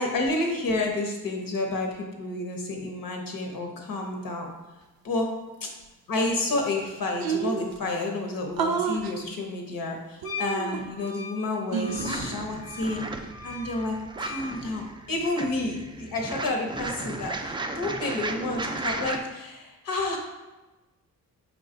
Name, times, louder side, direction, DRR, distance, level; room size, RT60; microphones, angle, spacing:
voice 1, 0.0-4.5 5.0-5.3 5.6-5.7 6.1-13.0 13.4-20.2, left 2 dB, 65° left, 2 dB, 1.0 m, -30 dB
sound 1, 6.5-6.6 6.8-6.9 7.2-7.8 8.6-9.1 10.2-11.1 11.7-12.3, right 6 dB, 80° right, 0.5 m, -29 dB
Wind instrument woodwind instrument, 10.2-14.5, left 4 dB, 90° left, 0.6 m, -40 dB
sound 2, 11.9-19.2, right 2 dB, 15° right, 0.3 m, -35 dB
4.9 x 2.4 x 3.8 m, 1.1 s
cardioid pair, 60°, 36 cm